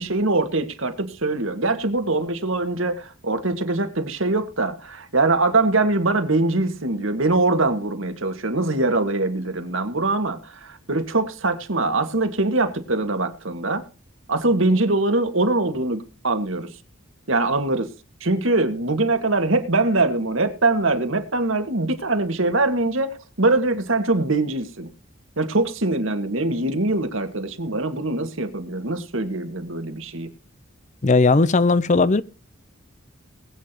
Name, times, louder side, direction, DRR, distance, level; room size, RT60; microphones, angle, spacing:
voice 1, 0.0-13.8 14.3-16.7 17.3-17.9 18.2-23.1 23.4-24.9 25.4-30.3, right 2 dB, 70° right, 1.9 m, -23 dB
voice 2, 31.0-32.2, left 3 dB, 35° left, 0.6 m, -17 dB
21.0 x 8.7 x 3.0 m
head